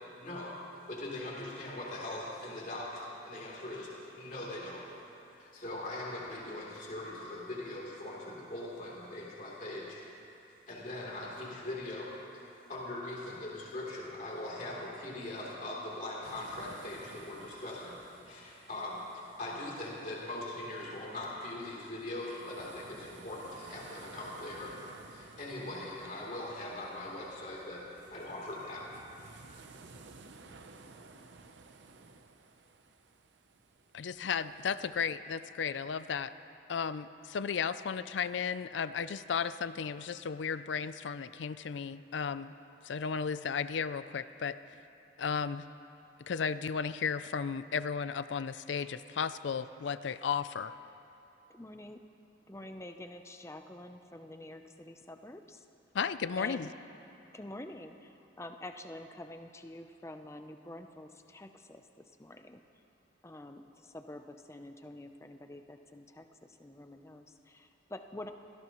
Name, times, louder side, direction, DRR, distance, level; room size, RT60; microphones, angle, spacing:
voice 1, 0.2-0.5 0.9-5.1 5.3-10.1 10.7-12.4 12.7-18.0 18.2-24.7 25.1-27.8 28.1-28.8, left 1 dB, 45° left, -4 dB, 3.4 m, -41 dB
sound 1, 16.2-35.1, right 3 dB, 75° right, 0.8 m, -55 dB
voice 2, 33.9-36.3 36.7-42.5 42.8-44.6 45.2-45.7 46.2-50.7 55.9-56.7, left 6 dB, 75° left, 14 dB, 0.4 m, -34 dB
voice 3, 51.5-52.0 52.5-55.7 56.4-56.7 57.3-62.6 63.2-68.3, left 1 dB, 15° left, 6 dB, 0.6 m, -47 dB
25.0 x 17.0 x 3.1 m, 2.8 s
head